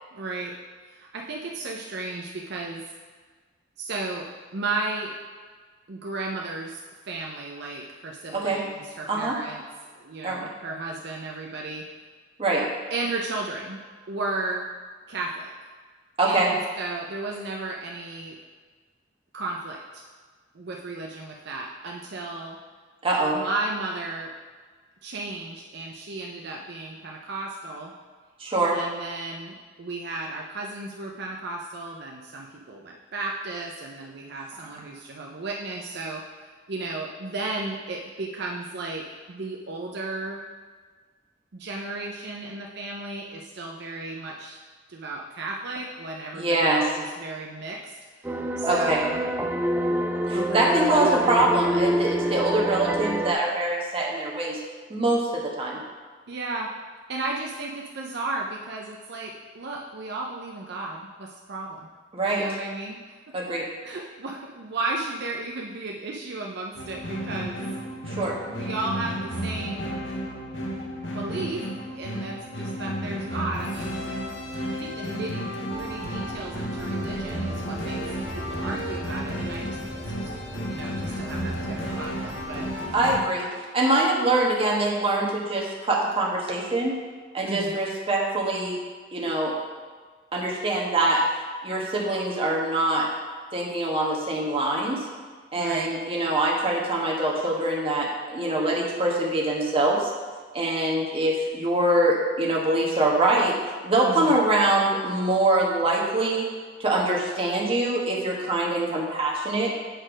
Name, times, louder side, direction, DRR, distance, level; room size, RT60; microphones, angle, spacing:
voice 1, 0.1-0.5 0.8-2.8 3.8-5.1 5.9-11.9 12.9-13.8 14.1-14.7 15.1-15.5 16.2-18.4 19.3-20.0 20.5-22.6 23.3-24.3 25.0-27.9 28.7-40.4 41.5-44.6 44.9-48.3 48.6-49.2 50.3-51.5 56.3-56.7 57.1-61.9 62.2-63.0 63.8-67.7 68.4-70.0 70.9-71.6 71.9-74.0 74.6-78.0 78.3-82.7 87.4-87.8 95.5-95.9 104.0-104.4, right 2 dB, 60° right, 0 dB, 0.6 m, -34 dB
voice 2, 16.2-16.5 23.0-23.4 28.4-28.8 46.3-46.8 48.7-49.0 50.3-54.6 54.9-55.8 62.1-62.4 63.3-63.6 68.1-68.3 82.9-83.5 83.7-86.9 87.3-88.8 89.1-89.5 90.3-91.2 91.6-93.1 93.5-95.0 95.5-100.1 100.5-103.5 103.8-106.5 106.8-109.7, right 2 dB, 30° right, -2 dB, 1.3 m, -24 dB
sound 1, 48.3-53.3, right 1 dB, 10° right, 0.4 m, -26 dB
sound 2, 66.7-83.2, equal, 90° left, 1.0 m, -33 dB
sound 3, 75.7-83.2, equal, 85° right, 1.6 m, -39 dB
7.8 x 4.4 x 5.0 m, 1.5 s
head